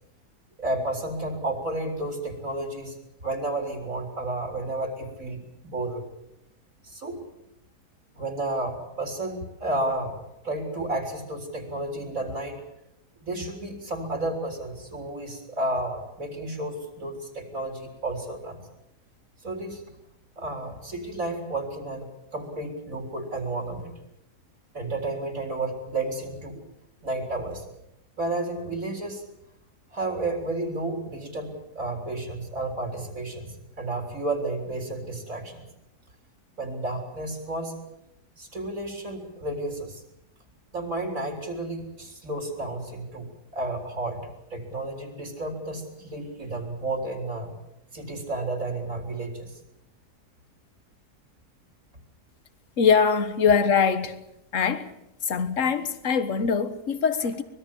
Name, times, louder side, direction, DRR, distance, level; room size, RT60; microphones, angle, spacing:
voice 1, 0.6-3.0 3.2-6.0 6.8-7.2 8.2-12.6 13.2-18.6 19.4-19.8 20.4-22.1 22.3-23.9 24.7-26.6 27.0-27.6 28.2-29.2 29.9-35.7 36.6-37.8 38.4-40.0 40.7-47.5 47.9-49.5, right 2 dB, 55° right, 4.2 m, -32 dB
voice 2, 52.8-54.2 54.5-54.9 55.2-57.4, left 6 dB, 50° left, 1.7 m, -23 dB
24.5 x 21.0 x 7.2 m
omnidirectional pair, 1.7 m